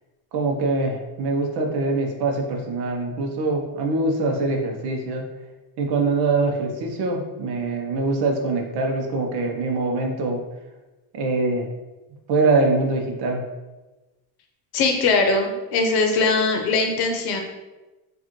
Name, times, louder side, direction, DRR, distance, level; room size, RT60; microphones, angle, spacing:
voice 1, 0.3-5.2 5.8-10.4 11.1-11.7 12.3-13.4, right 3 dB, 60° right, 2 dB, 0.8 m, -23 dB
voice 2, 14.7-17.4, left 3 dB, 60° left, 3 dB, 0.8 m, -21 dB
4.7 x 2.5 x 2.9 m, 1.1 s
cardioid pair, 135°, 44 cm